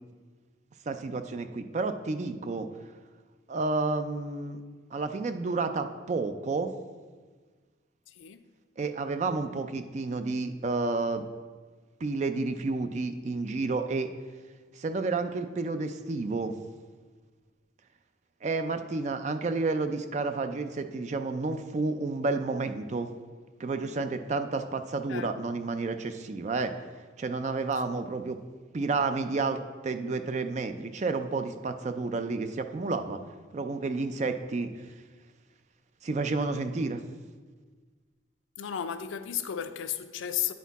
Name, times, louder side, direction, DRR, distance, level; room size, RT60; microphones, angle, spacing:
voice 1, 0.9-2.7 3.5-4.6 4.9-6.7 8.8-11.2 12.0-14.1 14.7-16.5 18.4-23.1 23.6-26.7 27.2-28.4 28.7-29.6 29.8-33.2 33.5-34.7 36.0-37.0, right 3 dB, 35° right, 0.3 m, -30 dB
voice 2, 8.1-8.4 25.1-25.3 38.6-40.5, left 9 dB, 85° left, 0.4 m, -33 dB
9.2 x 4.3 x 4.0 m
head